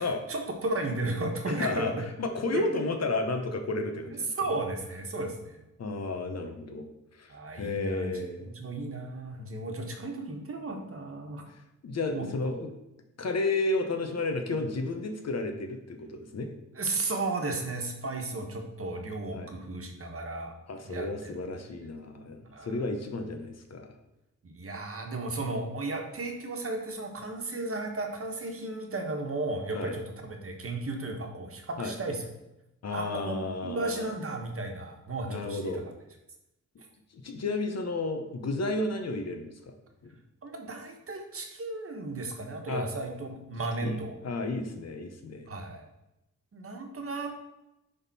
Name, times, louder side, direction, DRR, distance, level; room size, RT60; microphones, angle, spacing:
voice 1, 0.0-2.0 2.5-2.8 4.4-5.6 7.3-11.4 12.1-12.3 16.7-20.5 20.8-21.3 22.5-22.9 24.4-32.3 32.9-33.4 33.6-35.7 40.4-44.2 45.5-45.8 46.5-47.4, right 2 dB, 45° right, 2 dB, 1.3 m, -34 dB
voice 2, 1.5-1.9 2.2-4.3 5.8-6.9 7.2-7.3 7.6-8.5 11.8-12.7 13.2-16.5 19.3-19.5 20.7-23.9 29.7-30.0 31.8-31.9 32.8-34.1 35.3-35.8 37.1-39.6 42.7-42.9 43.8-45.5, left 2 dB, 55° left, 5 dB, 1.0 m, -32 dB
10.5 x 3.7 x 4.2 m, 0.91 s
wide cardioid pair, 120°, 31 cm